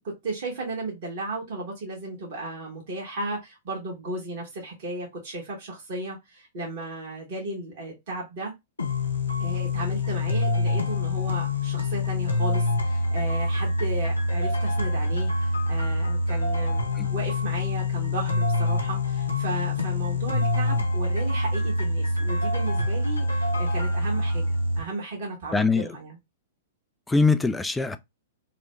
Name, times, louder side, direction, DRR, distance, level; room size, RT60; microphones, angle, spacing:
voice 1, 0.0-8.5 9.4-26.2, right 2 dB, 50° right, 1.4 m, -35 dB
sound 1, 8.8-24.8, left 2 dB, 90° left, 0.7 m, -25 dB
voice 2, 25.5-26.0 27.1-28.0, left 4 dB, 5° left, 0.3 m, -22 dB
3.2 x 2.1 x 3.0 m
figure-of-eight pair, 105°, 0 cm